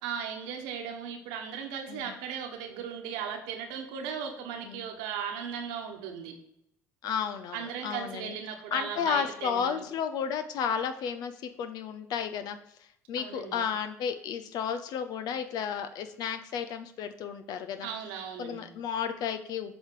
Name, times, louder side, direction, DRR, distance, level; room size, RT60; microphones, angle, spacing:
voice 1, 0.0-6.3 7.5-9.9 13.2-13.7 17.8-18.7, right 7 dB, 70° right, 4 dB, 1.4 m, -37 dB
voice 2, 7.0-8.4 8.7-11.3 11.6-12.6 13.1-17.9 18.4-19.8, left 7 dB, 55° left, 9 dB, 0.6 m, -32 dB
8.0 x 5.0 x 4.8 m, 0.77 s
hypercardioid pair, 60°, 8 cm